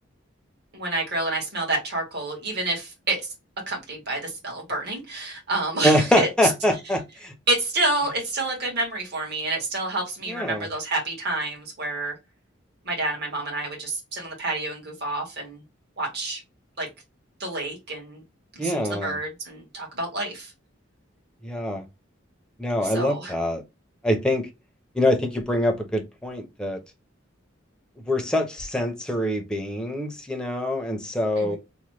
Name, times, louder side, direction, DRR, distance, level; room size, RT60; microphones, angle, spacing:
voice 1, 0.7-3.2 3.7-6.3 7.5-12.1 12.8-15.6 16.0-16.4 16.8-16.9 17.4-18.2 18.5-20.5 22.8-23.3 31.4-31.6, right 2 dB, 55° right, 1.4 m, -28 dB
voice 2, 5.8-7.3 10.3-10.7 18.6-19.2 21.4-21.8 22.6-23.6 24.0-24.5 24.9-26.8 28.1-31.6, left 1 dB, 5° left, 0.6 m, -24 dB
3.0 x 2.1 x 3.1 m
head